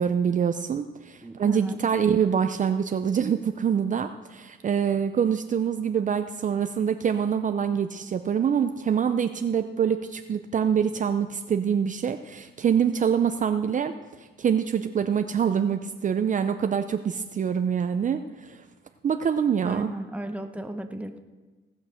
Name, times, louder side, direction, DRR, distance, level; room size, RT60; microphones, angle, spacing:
voice 1, 0.0-13.9 14.4-18.6 19.0-19.9, right 7 dB, 40° right, 8 dB, 0.6 m, -25 dB
voice 2, 1.2-1.8 19.6-21.2, right 1 dB, 5° right, 6 dB, 1.1 m, -35 dB
17.0 x 6.6 x 6.4 m, 1.3 s
cardioid pair, 90°, 20 cm